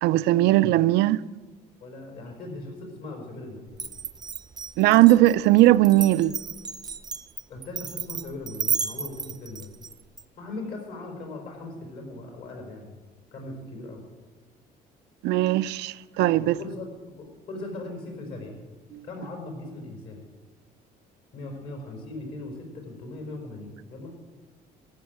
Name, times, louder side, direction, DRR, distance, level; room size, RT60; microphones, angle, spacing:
voice 1, 0.0-1.2 4.8-6.4 15.2-16.6, right 16 dB, 80° right, 0.4 m, -19 dB
voice 2, 1.8-3.8 7.5-9.7 10.4-13.0 13.3-14.0 16.4-16.9 17.2-18.5 19.0-20.2 21.3-24.1, left 2 dB, 70° left, 4.3 m, -39 dB
Glass, 3.7-10.2, right 7 dB, 25° right, 0.6 m, -33 dB
14.0 x 6.4 x 9.1 m
cardioid pair, 110°, 17 cm